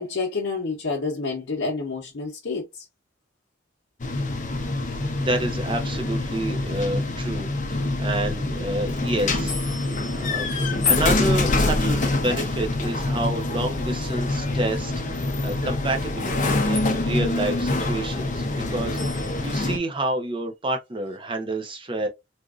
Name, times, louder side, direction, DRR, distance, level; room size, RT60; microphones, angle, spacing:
voice 1, 0.0-2.8, left 4 dB, 75° left, 0.8 m, -29 dB
sound 1, 4.0-19.8, left 2 dB, 40° left, 0.6 m, -25 dB
voice 2, 5.2-9.6 10.1-10.5 10.8-22.1, right 1 dB, 25° right, 0.7 m, -29 dB
3.4 x 2.5 x 2.4 m
head